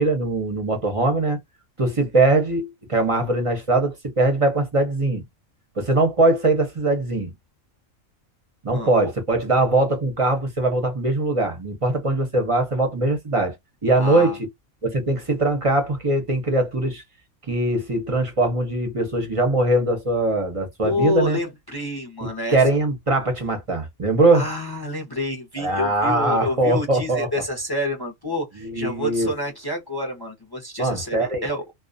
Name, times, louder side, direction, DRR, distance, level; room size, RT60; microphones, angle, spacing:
voice 1, 0.0-1.4 1.8-5.2 5.8-7.3 8.6-13.6 13.8-14.5 14.8-17.0 17.5-21.4 22.2-24.5 25.6-27.3 28.6-29.3 30.8-31.4, right 2 dB, 35° right, 0.6 m, -21 dB
voice 2, 14.0-14.4 20.8-22.6 24.3-31.6, left 1 dB, 30° left, 0.4 m, -28 dB
2.3 x 2.2 x 2.4 m
omnidirectional pair, 1.4 m